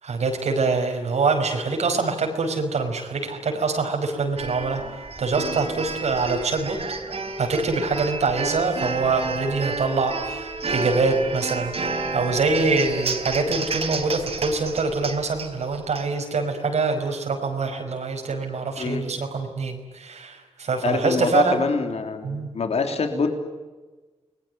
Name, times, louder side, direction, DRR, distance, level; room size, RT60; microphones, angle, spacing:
voice 1, 0.0-4.8 5.2-6.8 7.4-21.6 22.2-22.5, right 4 dB, 90° right, 3 dB, 5.3 m, -24 dB
sound 1, 4.4-16.1, right 3 dB, 65° right, 4.0 m, -31 dB
voice 2, 20.8-23.3, left 4 dB, 70° left, 6 dB, 3.3 m, -25 dB
30.0 x 21.5 x 9.4 m, 1.3 s
wide cardioid pair, 105°, 11 cm